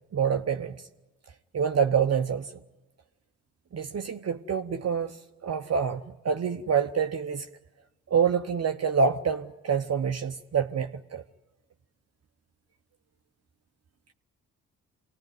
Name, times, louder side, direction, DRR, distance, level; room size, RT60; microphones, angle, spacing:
voice 1, 0.1-0.8 1.5-2.5 3.7-7.5 8.1-11.2, right 6 dB, 40° right, 6 dB, 0.9 m, -27 dB
25.5 x 18.5 x 9.4 m, 1.2 s
hypercardioid pair, 40°, 38 cm